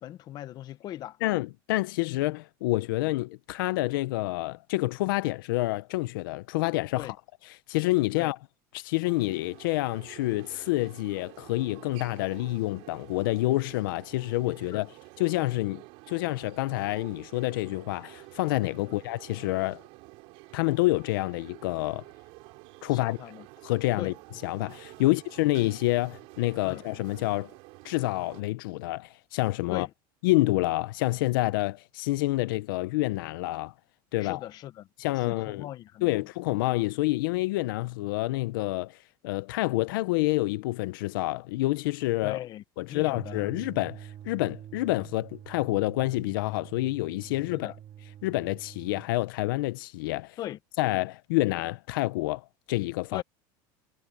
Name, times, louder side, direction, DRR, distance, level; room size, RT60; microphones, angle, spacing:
voice 1, 0.0-1.2 7.0-7.2 8.1-8.3 14.7-14.8 18.8-19.0 22.9-23.5 24.0-24.1 25.0-25.2 26.6-26.8 29.7-29.9 34.2-34.9 35.1-36.3 42.2-43.5 47.5-47.8 50.4-50.6 53.1-53.2, left 13 dB, 40° left, 1.0 m, -39 dB
voice 2, 1.2-7.2 7.7-8.4 8.7-14.9 15.2-19.8 20.5-22.0 22.8-23.2 23.6-24.1 24.4-27.5 27.8-29.9 30.2-33.7 34.1-34.4 35.0-35.6 36.0-39.0 39.2-42.4 42.8-47.7 48.2-50.4 50.8-53.2, left 19 dB, 90° left, 0.7 m, -28 dB
sound 1, 9.0-28.4, right 25 dB, 60° right, 5.6 m, -49 dB
sound 2, 43.1-49.1, right 10 dB, 35° right, 3.3 m, -46 dB
supercardioid pair, 150°, 11 cm